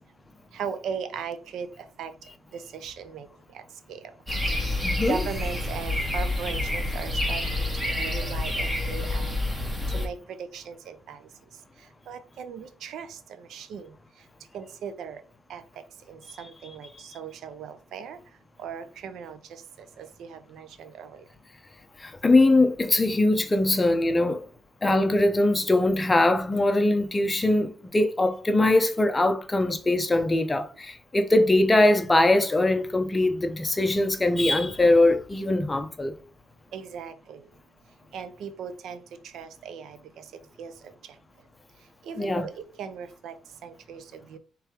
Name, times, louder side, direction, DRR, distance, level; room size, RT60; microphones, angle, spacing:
voice 1, 0.5-1.7 2.0-2.1 2.5-3.3 5.1-7.7 8.0-9.3 9.9-10.1 10.5-11.2 12.1-13.1 13.5-13.9 14.5-15.2 15.5-15.6 16.1-16.9 17.1-18.2 18.6-19.4 20.0-21.1 36.7-37.4 38.1-39.0 39.3-40.0 40.6-40.7 42.1-42.5 42.8-43.3 43.6-44.0 44.3-44.4, right 7 dB, 75° right, 0.6 m, -37 dB
sound 1, 4.3-10.1, left 1 dB, 10° right, 1.4 m, -28 dB
voice 2, 4.8-5.2 22.0-24.4 24.8-36.1 42.2-42.5, left 2 dB, 20° left, 0.8 m, -22 dB
3.4 x 3.3 x 4.7 m
cardioid pair, 90°, 0 cm